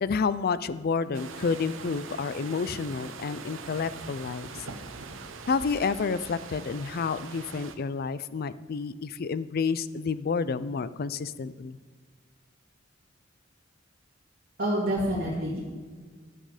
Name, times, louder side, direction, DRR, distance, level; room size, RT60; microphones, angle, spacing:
voice 1, 0.0-4.5 5.5-11.8, left 5 dB, 50° left, 15 dB, 0.4 m, -29 dB
sound 1, 1.1-7.7, right 4 dB, 85° right, 0.9 m, -42 dB
voice 2, 14.6-15.6, right 1 dB, 50° right, -6 dB, 2.6 m, -27 dB
13.5 x 7.7 x 5.0 m, 1.5 s
head